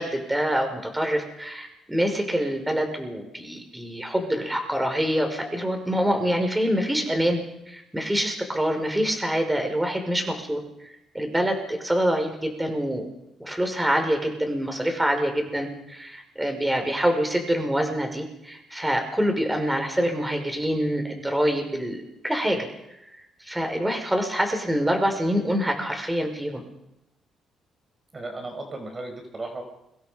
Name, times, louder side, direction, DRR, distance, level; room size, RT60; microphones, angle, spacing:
voice 1, 0.0-7.4 7.7-13.1 13.4-22.7 23.4-26.6, equal, 10° right, 4 dB, 5.7 m, -26 dB
voice 2, 28.1-29.6, right 2 dB, 30° right, 5 dB, 5.0 m, -35 dB
29.5 x 25.5 x 5.3 m, 0.86 s
cardioid pair, 90°, 0 cm